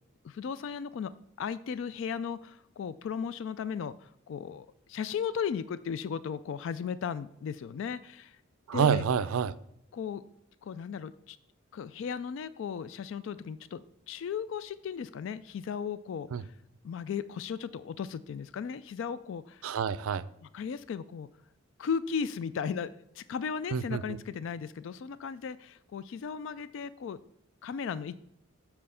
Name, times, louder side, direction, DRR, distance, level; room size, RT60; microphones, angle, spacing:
voice 1, 0.2-1.1 1.4-8.4 8.7-9.0 9.9-10.2 10.6-11.4 11.7-16.5 16.8-19.7 20.5-21.3 21.8-27.2 27.6-28.2, left 7 dB, 60° left, 16 dB, 0.3 m, -36 dB
voice 2, 8.7-9.5 16.3-16.4 19.6-20.3 23.7-24.2, right 7 dB, 80° right, 17 dB, 0.4 m, -28 dB
7.5 x 4.4 x 5.6 m, 0.79 s
head